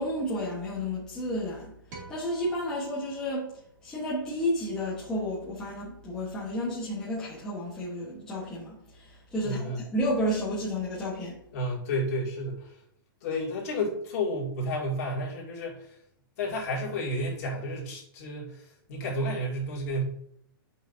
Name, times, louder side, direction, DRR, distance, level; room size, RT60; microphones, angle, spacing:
voice 1, 0.0-1.7 2.1-3.5 3.8-11.4, equal, 5° left, -8 dB, 1.1 m, -31 dB
sound 1, 1.9-4.4, right 3 dB, 50° right, 2.2 m, -49 dB
voice 2, 9.4-9.8 11.5-12.8 13.2-16.0 16.4-20.0, equal, 40° left, -4 dB, 2.4 m, -31 dB
9.2 x 5.7 x 2.7 m, 0.70 s
hypercardioid pair, 175°, 13 cm